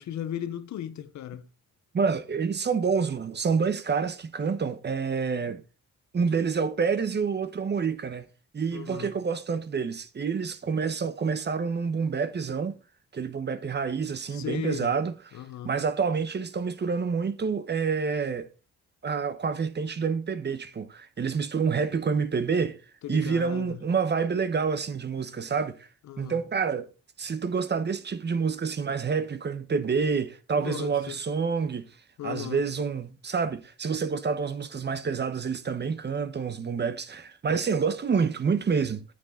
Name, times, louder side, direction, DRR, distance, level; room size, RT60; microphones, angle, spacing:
voice 1, 0.0-1.5 8.7-9.1 14.3-15.0 15.3-15.7 23.0-23.8 26.0-26.4 30.6-31.2 32.2-32.7, left 11 dB, 65° left, 0.9 m, -36 dB
voice 2, 1.9-5.6 6.1-8.2 8.5-12.8 13.1-15.1 15.6-18.5 19.0-22.8 23.1-25.9 26.2-26.9 27.2-31.9 32.2-39.0, right 5 dB, 35° right, 1.0 m, -28 dB
9.5 x 8.4 x 3.8 m
cardioid pair, 90°, 30 cm